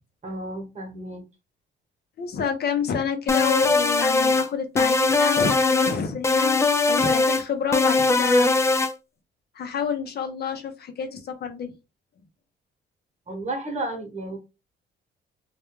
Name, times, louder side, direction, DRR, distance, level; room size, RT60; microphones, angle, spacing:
voice 1, 0.2-1.2 13.3-14.4, right 2 dB, 35° right, 1.1 m, -32 dB
voice 2, 2.2-6.6 6.9-8.8 9.5-11.7, left 6 dB, 55° left, 0.7 m, -28 dB
sound 1, 3.3-4.5 4.8-6.0 6.2-7.4 7.7-8.9, left 3 dB, 15° left, 0.3 m, -20 dB
2.4 x 2.1 x 3.0 m
cardioid pair, 90°, 20 cm